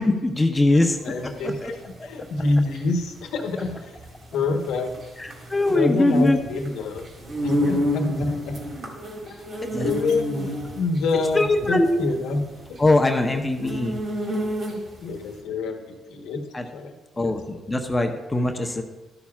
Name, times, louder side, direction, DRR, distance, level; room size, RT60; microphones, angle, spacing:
voice 1, 0.0-1.7 2.0-2.1 5.2-6.4 7.6-7.8 9.6-9.9 11.3-12.1 12.8-14.0 16.5-16.7 17.2-18.8, left 2 dB, 15° left, 4 dB, 0.8 m, -22 dB
sound 1, 0.9-15.1, equal, 50° right, 2.0 m, -30 dB
voice 2, 1.0-1.8 2.0-3.9 4.3-4.9 5.6-7.0 7.4-8.6 9.2-9.4 9.7-12.4 13.6-13.7 15.0-16.4 16.7-17.3, left 3 dB, 85° left, 4 dB, 1.1 m, -26 dB
12.5 x 7.0 x 2.4 m, 1.1 s
cardioid pair, 90°, 0 cm